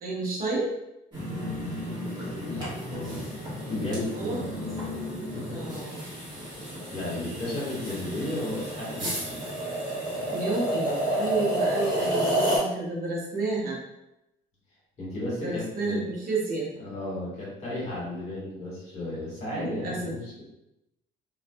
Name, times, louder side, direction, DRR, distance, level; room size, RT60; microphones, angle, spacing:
voice 1, 0.0-0.7 4.1-4.4 5.5-6.0 10.3-13.8 15.4-16.7 19.5-20.1, right 3 dB, 60° right, -4 dB, 0.9 m, -30 dB
sound 1, 1.1-12.6, right 1 dB, 25° right, 1.3 m, -31 dB
voice 2, 2.4-3.2 3.5-4.9 5.3-5.8 6.3-9.4 15.0-16.0 16.8-20.4, left 1 dB, 40° left, -6 dB, 1.5 m, -34 dB
2.5 x 2.4 x 2.2 m, 0.88 s
cardioid pair, 110°, 17 cm